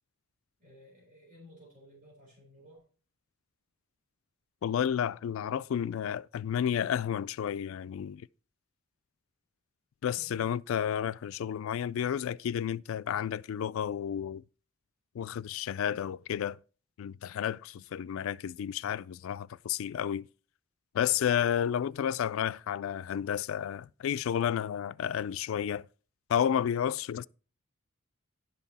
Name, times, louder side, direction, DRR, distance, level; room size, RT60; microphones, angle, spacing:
voice 1, 0.6-2.8 10.2-10.5, left 1 dB, 40° right, 3.7 m, -55 dB
voice 2, 4.6-8.3 10.0-14.4 15.1-16.6 17.0-20.3 20.9-25.9 26.3-27.3, left 9 dB, 65° left, 0.3 m, -31 dB
10.5 x 6.0 x 4.1 m
head